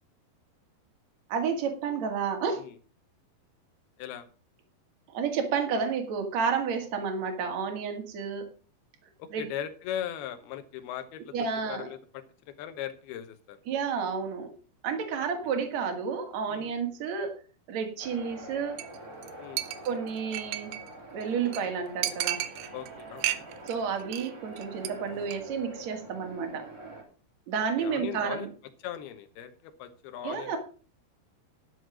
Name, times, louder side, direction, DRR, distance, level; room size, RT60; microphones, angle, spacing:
voice 1, 1.3-2.7 5.1-8.5 9.3-9.5 11.3-11.9 13.7-14.5 14.8-17.4 17.7-18.8 19.8-20.8 21.1-22.4 23.7-26.7 27.5-28.5 30.2-30.6, right 6 dB, 50° right, 5 dB, 2.8 m, -31 dB
voice 2, 9.2-11.3 11.7-13.6 15.1-15.2 16.5-16.7 19.4-19.6 22.7-23.4 27.8-28.5 28.8-30.6, left 10 dB, 75° left, 9 dB, 2.9 m, -39 dB
sound 1, 18.0-27.0, right 2 dB, 25° right, 2.6 m, -45 dB
Chink clink, 18.8-19.0 19.2-19.3 19.6-20.9 21.2-21.3 21.5-21.6 22.0-22.9 23.2-23.7 24.0-24.3 24.6-24.9 25.2-25.4, right 13 dB, 75° right, 2.6 m, -33 dB
11.5 x 6.4 x 6.2 m, 0.38 s
omnidirectional pair, 4.8 m